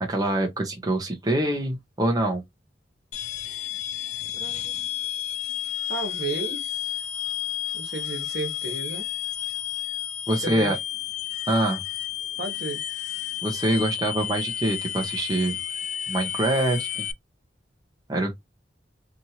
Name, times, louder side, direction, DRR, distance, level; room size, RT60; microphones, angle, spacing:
voice 1, 0.0-2.4 10.3-10.8 11.5-11.8 13.4-15.5 16.1-17.1 18.1-18.3, right 1 dB, 20° right, 0.6 m, -25 dB
sound 1, 3.1-17.1, left 11 dB, 40° left, 0.3 m, -31 dB
voice 2, 4.4-5.0 5.9-7.0 7.7-9.1 10.4-10.8 12.4-12.8, right 3 dB, 70° right, 1.0 m, -34 dB
2.8 x 2.5 x 2.8 m
head